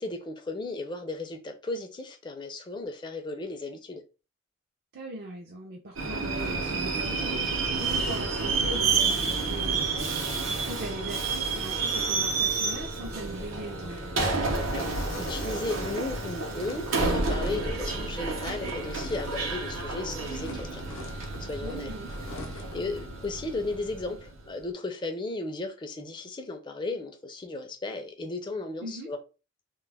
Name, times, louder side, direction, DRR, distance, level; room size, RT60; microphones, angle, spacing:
voice 1, 0.0-4.0 14.7-20.8 21.4-21.9 22.5-29.2, left 2 dB, 25° left, 0.4 m, -35 dB
voice 2, 4.9-14.1 21.6-22.1 28.8-29.1, right 1 dB, 50° right, 0.4 m, -40 dB
Subway metro underground, 6.0-24.4, right 4 dB, 90° right, 0.7 m, -30 dB
sound 1, 13.6-19.9 20.2-22.9, left 3 dB, 80° left, 0.6 m, -45 dB
2.2 x 2.1 x 3.3 m
head